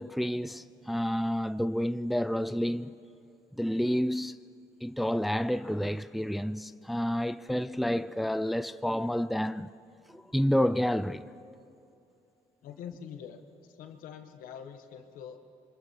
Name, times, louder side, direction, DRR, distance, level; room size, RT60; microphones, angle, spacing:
voice 1, 0.0-2.9 3.6-4.4 4.8-9.7 10.1-11.2, equal, ahead, 0.5 m, -29 dB
voice 2, 12.6-15.4, left 8 dB, 90° left, 1.6 m, -45 dB
27.0 x 24.5 x 4.7 m
cardioid pair, 100°, 14 cm